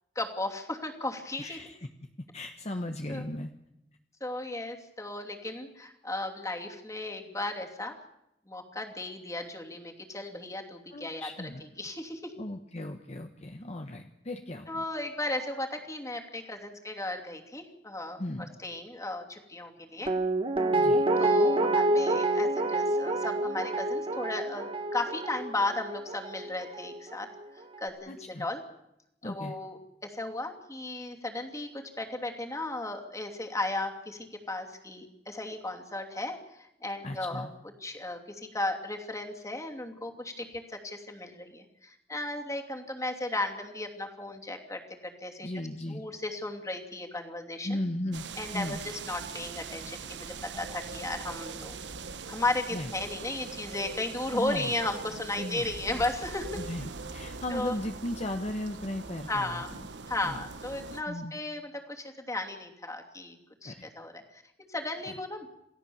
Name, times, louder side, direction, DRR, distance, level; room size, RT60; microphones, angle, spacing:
voice 1, 0.1-1.6 3.1-3.2 4.2-7.9 8.5-11.3 11.8-12.3 14.7-18.2 18.6-20.1 21.2-27.3 27.8-28.6 29.2-37.5 37.8-45.5 45.9-47.7 48.4-51.8 52.3-56.5 57.5-57.7 59.3-59.7 60.1-65.5, left 2 dB, 20° left, 3 dB, 2.8 m, -35 dB
voice 2, 1.4-1.9 2.3-3.5 10.9-11.7 12.4-14.8 18.2-18.4 20.7-21.0 28.1-28.5 29.2-29.5 37.0-37.6 45.4-46.0 47.6-48.3 48.5-48.8 52.7-52.9 54.3-54.7 55.4-56.0 56.6-59.8 60.2-60.4 61.1-61.4 63.6-63.9 65.1-65.2, left 1 dB, 40° left, 5 dB, 1.2 m, -36 dB
Guitar, 20.1-27.1 27.4-27.5, right 1 dB, 30° right, 1.6 m, -27 dB
sound 1, 48.1-61.0, right 4 dB, 75° right, 1.3 m, -42 dB
28.5 x 17.0 x 7.2 m, 0.85 s
head